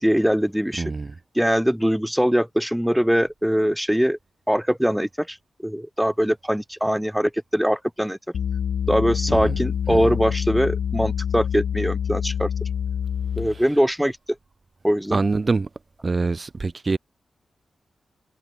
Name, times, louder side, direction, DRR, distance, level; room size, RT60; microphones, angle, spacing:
voice 1, 0.0-0.9 1.4-4.2 4.5-5.4 5.6-8.2 8.9-12.5 13.4-14.2 14.8-15.2, equal, 5° right, 2.0 m, -22 dB
voice 2, 0.8-1.1 9.3-9.6 9.9-10.0 15.1-15.7 16.0-17.0, right 3 dB, 40° right, 1.5 m, -24 dB
sound 1, 8.3-13.6, left 8 dB, 85° left, 1.7 m, -26 dB
cardioid pair, 55°, 0 cm